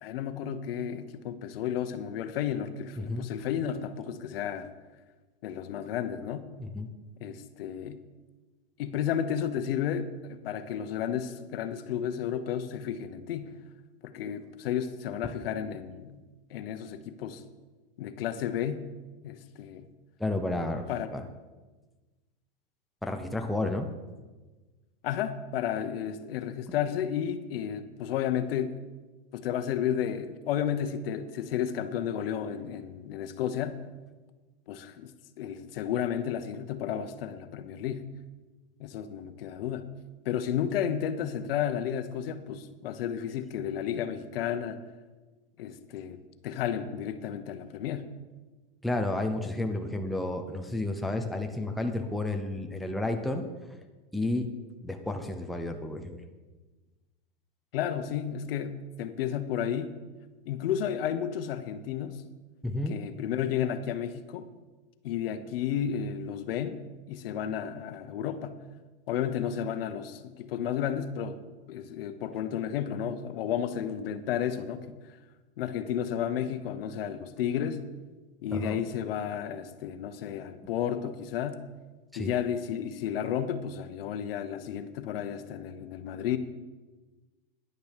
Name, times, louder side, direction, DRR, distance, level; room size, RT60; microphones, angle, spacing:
voice 1, 0.0-4.7 5.4-6.5 7.2-8.0 8.8-13.5 14.0-16.2 16.5-17.4 18.0-18.8 19.2-19.9 20.9-21.1 25.0-28.8 29.3-33.8 34.7-35.1 35.4-38.1 38.8-39.9 40.2-44.8 45.6-48.1 57.7-59.9 60.5-62.2 62.9-64.5 65.0-66.8 67.1-68.5 69.1-71.4 71.7-75.0 75.6-77.8 78.4-81.6 82.2-86.4, left 9 dB, 75° left, 10 dB, 1.0 m, -32 dB
voice 2, 3.0-3.3 6.6-6.9 20.2-20.9 21.1-21.2 23.0-23.9 48.8-53.4 54.1-54.5 54.8-56.2 62.6-63.0 78.5-78.8 82.1-82.3, left 2 dB, ahead, 4 dB, 0.7 m, -31 dB
10.5 x 6.8 x 6.6 m, 1.3 s
supercardioid pair, 135°, 29 cm